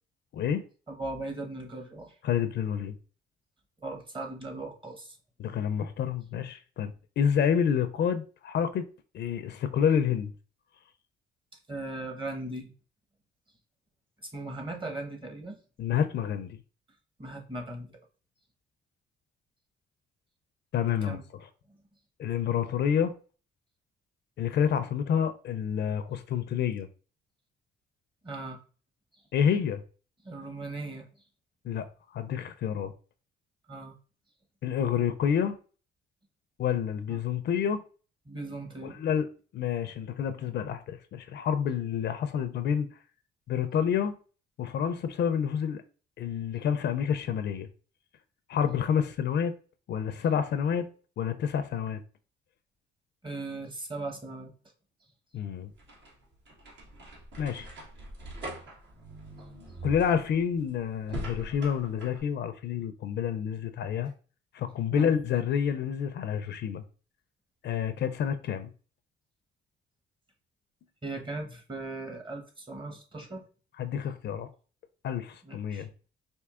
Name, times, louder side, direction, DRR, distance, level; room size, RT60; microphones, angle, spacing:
voice 1, 0.3-0.6 2.2-3.0 5.4-8.9 9.1-10.3 15.8-16.6 20.7-21.2 22.2-23.2 24.4-26.9 29.3-29.8 31.6-31.9 32.1-32.9 34.6-35.6 36.6-37.8 38.8-39.3 39.5-42.9 43.5-44.1 44.6-45.8 46.2-47.7 48.5-49.6 49.9-52.0 55.3-55.7 57.4-57.7 59.8-64.1 64.5-66.8 67.6-68.7 73.8-74.5 75.0-75.9, left 8 dB, 60° left, 0.4 m, -28 dB
voice 2, 0.9-2.2 3.8-5.2 11.7-12.7 14.3-15.6 17.2-17.9 21.1-21.2 28.2-28.6 30.2-31.1 33.7-33.9 37.1-37.2 38.3-39.0 53.2-54.5 64.9-65.1 71.0-73.4 75.4-75.9, right 2 dB, 25° right, 1.0 m, -38 dB
sound 1, 55.5-62.2, right 2 dB, 65° right, 1.2 m, -42 dB
4.5 x 2.7 x 2.4 m
cardioid pair, 90°, 20 cm